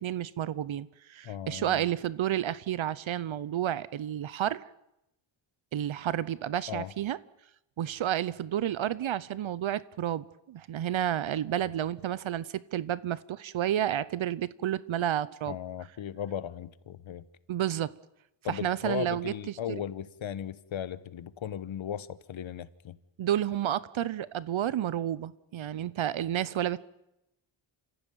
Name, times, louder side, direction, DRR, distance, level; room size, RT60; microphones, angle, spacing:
voice 1, 0.0-4.6 5.7-7.2 7.8-15.5 17.5-17.9 18.5-19.8 23.2-26.8, right 11 dB, 70° right, 0.8 m, -31 dB
voice 2, 1.2-1.9 6.7-6.9 15.5-17.3 18.4-23.0, left 9 dB, 70° left, 1.2 m, -37 dB
28.0 x 15.0 x 9.2 m
wide cardioid pair, 105°, 49 cm